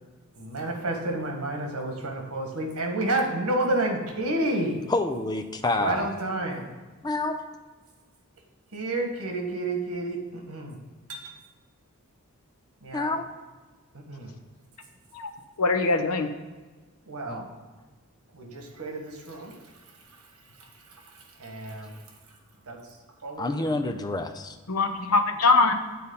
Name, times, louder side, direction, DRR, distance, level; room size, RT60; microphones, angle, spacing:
voice 1, 0.4-4.8 5.7-6.7 8.7-10.8 11.1-11.2 12.8-13.2 13.9-14.3 17.0-17.5 18.3-19.6 20.1-20.2 20.6-22.0 22.7-22.8 23.2-23.7, right 2 dB, 80° right, 2 dB, 1.4 m, -30 dB
voice 2, 4.9-6.1 7.0-7.4 12.9-13.3 17.3-17.4 23.4-24.6, left 2 dB, 20° left, 7 dB, 0.4 m, -28 dB
voice 3, 15.6-16.3 24.7-25.7, left 3 dB, 90° left, 8 dB, 0.8 m, -22 dB
9.3 x 4.2 x 5.4 m, 1.3 s
head